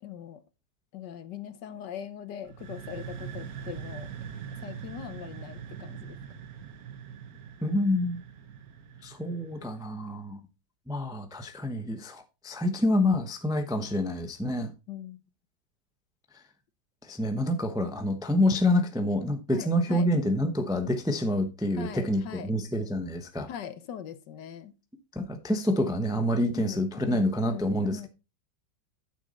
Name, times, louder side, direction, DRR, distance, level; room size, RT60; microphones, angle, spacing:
voice 1, 0.0-0.4 0.9-4.1 4.6-6.2 14.9-15.2 19.5-20.1 21.8-22.5 23.5-24.7 26.5-28.1, left 9 dB, 70° left, 1.4 m, -41 dB
sound 1, 2.4-10.1, right 7 dB, 55° right, 1.4 m, -42 dB
voice 2, 7.6-8.2 9.0-10.4 10.9-14.7 17.1-23.5 25.1-28.1, left 1 dB, 5° right, 0.5 m, -27 dB
8.8 x 7.1 x 4.1 m
omnidirectional pair, 2.1 m